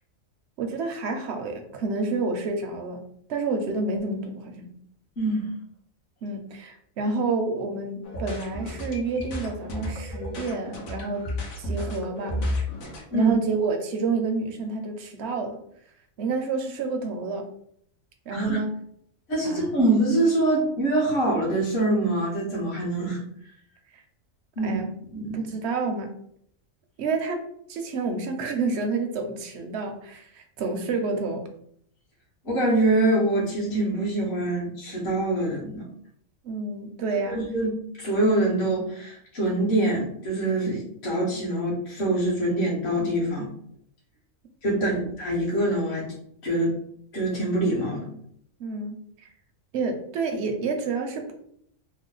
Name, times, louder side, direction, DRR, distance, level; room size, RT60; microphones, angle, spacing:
voice 1, 0.6-3.0 3.3-4.7 6.2-11.3 11.6-12.4 13.1-15.6 16.2-17.5 18.3-18.7 19.4-19.8 23.9-24.0 24.6-24.9 25.3-26.1 27.0-27.4 27.7-31.4 36.4-37.4 44.7-45.1 48.6-49.3 49.7-51.3, right 3 dB, 65° right, 5 dB, 0.7 m, -29 dB
sound 1, 8.0-13.0, left 1 dB, 85° left, 1.3 m, -32 dB
voice 2, 19.3-23.2 24.6-24.8 25.1-25.5 32.4-35.8 37.3-43.5 44.6-46.1 46.4-46.8 47.1-48.1, right 1 dB, 55° left, -6 dB, 1.3 m, -24 dB
3.1 x 2.1 x 3.8 m, 0.68 s
omnidirectional pair, 1.4 m